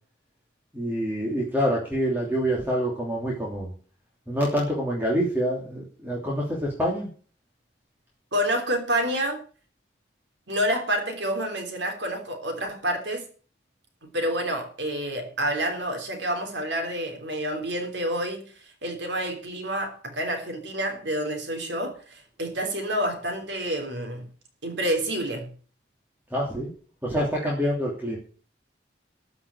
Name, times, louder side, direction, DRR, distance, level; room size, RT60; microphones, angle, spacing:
voice 1, 0.7-3.7 4.3-7.1 26.3-26.7 27.0-28.2, equal, 10° right, 3.0 m, -26 dB
voice 2, 8.3-9.4 10.5-13.3 14.0-24.3 24.6-25.5, right 1 dB, 65° right, 3.5 m, -28 dB
13.5 x 6.1 x 8.4 m
head